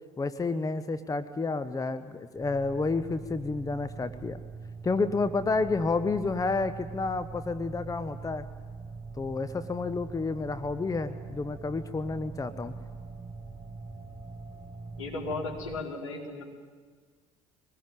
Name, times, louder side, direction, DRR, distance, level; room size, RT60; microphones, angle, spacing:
voice 1, 0.2-4.4 4.8-8.5 9.2-12.7, left 3 dB, 20° left, 12 dB, 1.1 m, -30 dB
sound 1, 2.3-15.8, right 4 dB, 10° right, 1.5 m, -43 dB
voice 2, 15.0-16.4, left 3 dB, 80° left, -3 dB, 4.8 m, -35 dB
23.5 x 20.0 x 9.2 m, 1.5 s
figure-of-eight pair, 60°, 17 cm